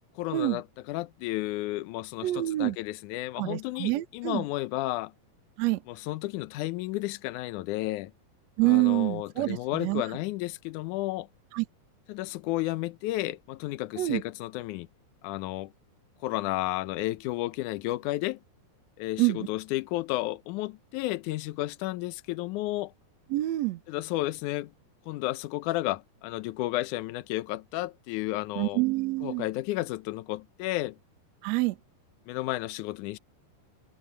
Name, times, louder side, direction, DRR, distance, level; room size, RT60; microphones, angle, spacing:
voice 1, 0.2-5.1 5.9-8.1 8.6-11.3 12.1-14.9 15.2-15.7 16.2-18.4 19.0-22.9 23.9-24.7 25.1-28.8 29.2-31.0 32.3-33.2, left 17 dB, 75° left, 1.8 m, -32 dB
voice 2, 2.2-2.8 3.4-4.4 5.6-5.8 8.6-10.0 11.5-11.7 14.0-14.2 19.2-19.5 23.3-23.8 28.6-29.5 31.4-31.8, right 19 dB, 65° right, 1.8 m, -26 dB
omnidirectional pair, 4.3 m